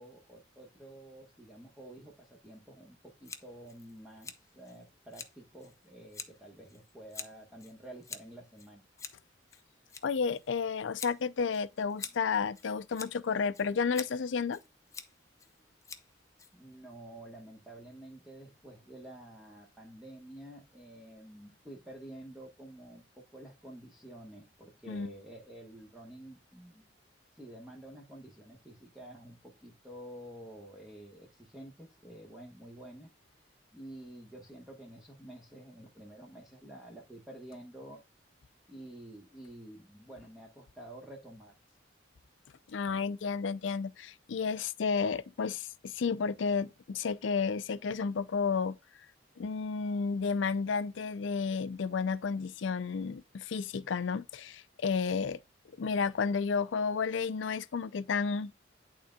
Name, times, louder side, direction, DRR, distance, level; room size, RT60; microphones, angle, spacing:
voice 1, 0.0-8.8 16.5-26.8 27.4-33.1 33.7-38.0 38.7-41.5, right 1 dB, 5° right, 1.1 m, -50 dB
Scissors, 3.2-17.0, left 5 dB, 15° left, 0.6 m, -48 dB
voice 2, 10.0-14.6 24.9-25.1 42.7-48.8 49.4-55.4 55.8-58.5, left 5 dB, 70° left, 0.4 m, -32 dB
11.0 x 3.8 x 2.2 m
head